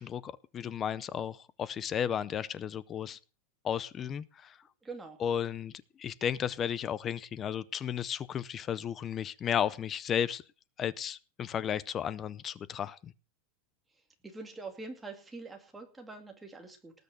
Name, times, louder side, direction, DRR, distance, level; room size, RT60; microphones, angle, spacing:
voice 1, 0.0-3.2 3.6-4.6 5.2-5.7 6.0-10.4 10.8-13.1, left 8 dB, 20° left, 0.6 m, -34 dB
voice 2, 4.8-5.2 14.2-16.9, right 3 dB, 5° right, 2.4 m, -44 dB
18.5 x 6.7 x 6.7 m
supercardioid pair, 165°, 0 cm